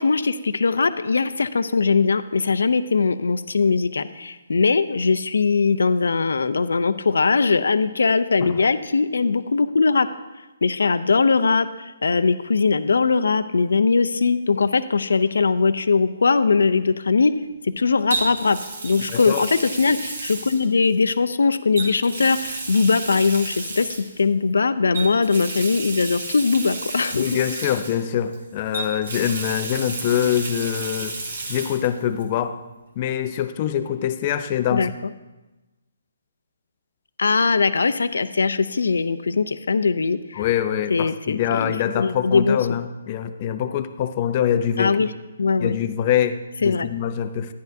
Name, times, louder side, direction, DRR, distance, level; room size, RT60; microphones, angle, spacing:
voice 1, 0.0-10.1 10.6-17.3 17.6-23.9 24.2-27.3 34.7-34.9 37.2-40.4 40.9-42.6 44.8-45.1 45.4-45.8 46.6-46.9, left 4 dB, 85° left, 13 dB, 0.4 m, -20 dB
Water tap faucet, 15.1-15.4 18.1-21.2 21.7-24.2 24.9-28.4 28.7-31.9 32.2-32.3 33.9-34.0, right 3 dB, 65° right, 1.7 m, -32 dB
voice 2, 19.0-19.4 27.2-31.2 31.5-32.6 33.0-34.9 40.3-45.0 45.6-47.5, left 10 dB, 30° left, 10 dB, 0.5 m, -24 dB
10.5 x 10.0 x 2.7 m, 1.1 s
hypercardioid pair, 165°, 0 cm